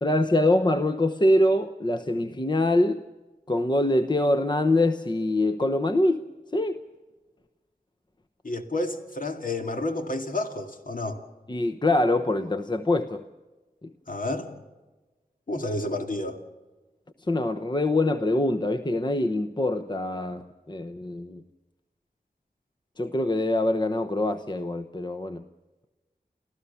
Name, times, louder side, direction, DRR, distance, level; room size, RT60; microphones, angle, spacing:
voice 1, 0.0-3.0 3.5-6.2 6.5-6.8 11.5-13.2 13.8-13.9 17.3-21.4 23.0-25.4, left 1 dB, 30° left, 8 dB, 0.9 m, -24 dB
voice 2, 8.4-11.2 14.1-14.5 15.5-16.4, left 2 dB, 60° left, 5 dB, 2.3 m, -30 dB
29.5 x 14.5 x 7.1 m, 1.2 s
wide cardioid pair, 70°, 16 cm